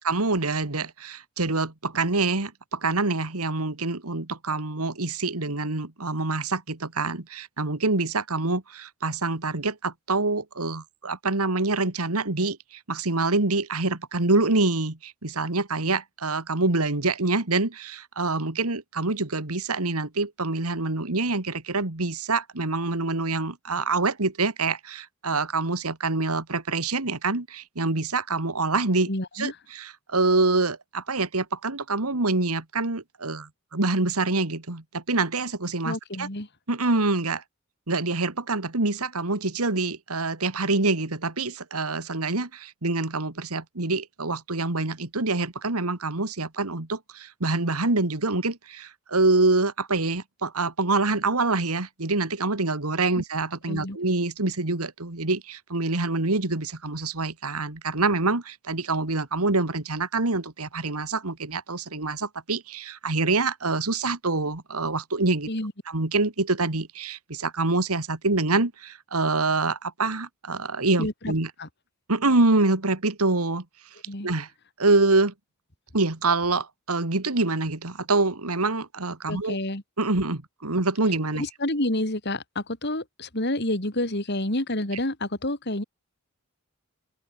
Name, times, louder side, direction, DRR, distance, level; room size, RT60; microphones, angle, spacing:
voice 1, 0.0-12.6 12.9-29.1 29.4-36.3 36.7-37.4 37.9-65.5 65.9-71.5 72.1-73.6 74.2-74.5 74.8-75.3 75.9-79.6 80.0-81.4, right 3 dB, 90° right, 2.3 m, -26 dB
voice 2, 29.1-29.5 35.8-36.5 53.7-54.0 65.5-65.7 71.0-71.3 71.6-71.7 74.1-74.3 79.3-79.8 81.3-85.8, left 1 dB, 50° left, 3.7 m, -29 dB
open air
head